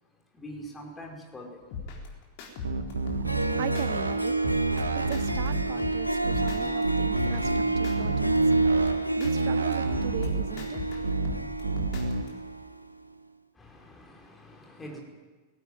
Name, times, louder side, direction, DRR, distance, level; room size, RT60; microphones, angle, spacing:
voice 1, 0.1-1.8 13.5-15.0, equal, 15° left, 5.1 m, -44 dB
sound 1, 1.7-3.9 4.3-6.8 7.2-9.3 9.7-12.3, left 4 dB, 45° left, 4.2 m, -39 dB
sound 2, 2.6-4.1 4.4-5.6 6.2-6.5 6.8-8.9 9.2-10.4 11.0-11.3 11.6-12.2, right 3 dB, 75° right, 1.7 m, -30 dB
Harp, 3.0-3.1 3.3-12.8, right 2 dB, 90° right, 0.9 m, -29 dB
voice 2, 3.6-4.4 4.9-8.3 9.2-10.8, right 15 dB, 50° right, 0.7 m, -38 dB
18.5 x 16.5 x 9.2 m
figure-of-eight pair, 90°, 0 cm